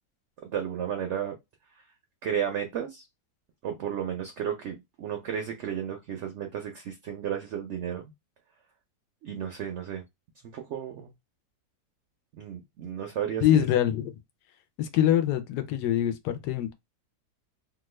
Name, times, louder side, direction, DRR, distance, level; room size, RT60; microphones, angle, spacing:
voice 1, 0.4-1.4 2.2-3.1 3.6-8.0 9.2-10.0 10.5-11.1 12.3-13.6, right 9 dB, 70° right, 0.6 m, -33 dB
voice 2, 13.4-14.2 14.8-16.7, left 11 dB, 85° left, 1.2 m, -24 dB
2.9 x 2.3 x 3.1 m
omnidirectional pair, 1.7 m